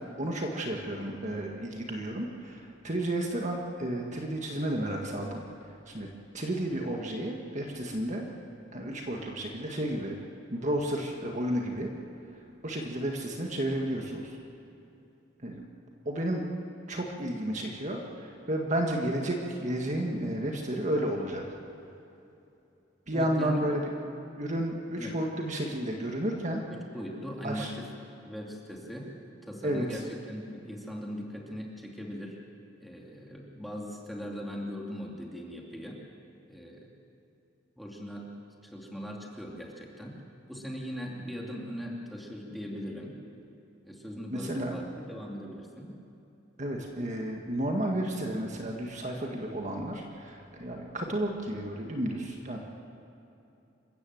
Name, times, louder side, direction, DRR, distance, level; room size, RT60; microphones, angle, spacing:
voice 1, 0.2-5.4 5.9-6.1 6.3-8.2 8.7-10.2 10.5-11.9 12.6-14.4 15.4-15.6 16.0-16.4 16.9-21.4 23.1-23.9 24.4-26.6 27.4-27.7 29.6-30.0 44.3-44.8 46.6-52.6, right 1 dB, 40° right, 1 dB, 1.7 m, -32 dB
voice 2, 23.1-23.8 24.9-25.2 26.7-27.9 28.2-32.4 32.8-36.0 36.5-36.9 37.8-38.3 38.6-40.2 40.5-43.1 43.8-46.0, equal, ahead, -2 dB, 2.7 m, -40 dB
26.5 x 15.0 x 7.9 m, 2.8 s
head